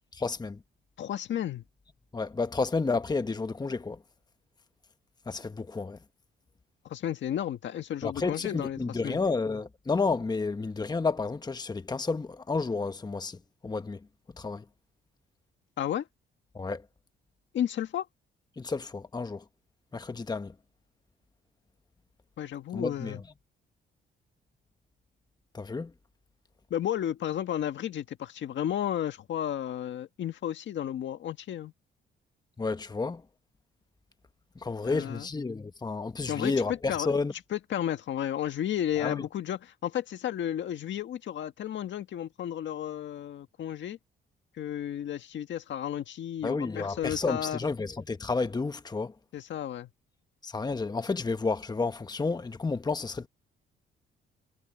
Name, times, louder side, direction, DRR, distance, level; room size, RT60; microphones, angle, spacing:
voice 1, 0.1-0.6 2.1-4.0 5.3-6.0 8.0-14.0 14.3-14.6 16.5-16.9 18.6-19.4 19.9-20.5 22.7-23.2 25.5-25.9 32.6-33.2 34.5-37.3 39.0-39.2 46.4-49.1 50.4-53.3, left 4 dB, 20° left, 1.2 m, -31 dB
voice 2, 1.0-1.6 6.8-9.2 15.8-16.1 17.5-18.1 22.4-23.2 26.7-31.7 34.8-35.3 36.3-36.5 36.9-37.1 37.5-44.0 44.6-47.6 49.3-49.9, left 10 dB, 65° left, 1.7 m, -33 dB
cardioid pair, 90°, 20 cm